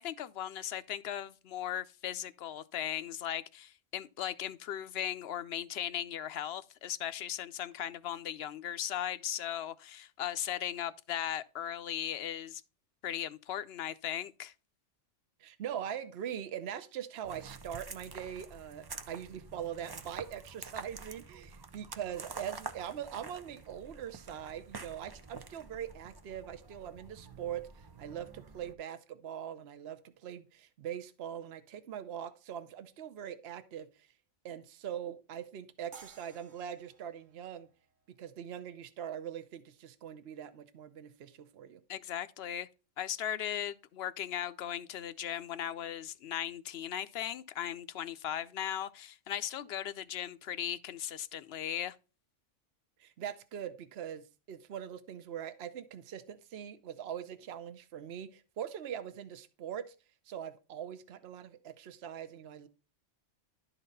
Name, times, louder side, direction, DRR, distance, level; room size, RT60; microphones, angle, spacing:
voice 1, 0.0-12.6 13.0-14.5 41.9-42.7 43.0-52.0, left 10 dB, 65° left, 0.8 m, -37 dB
voice 2, 15.4-34.1 34.4-37.7 38.2-41.8 53.0-59.9 60.2-62.7, right 9 dB, 60° right, 1.0 m, -42 dB
sound 1, 17.2-28.7, right 4 dB, 35° right, 0.3 m, -48 dB
sound 2, 35.9-39.0, right 5 dB, 90° right, 1.4 m, -57 dB
11.5 x 4.1 x 5.3 m
omnidirectional pair, 1.2 m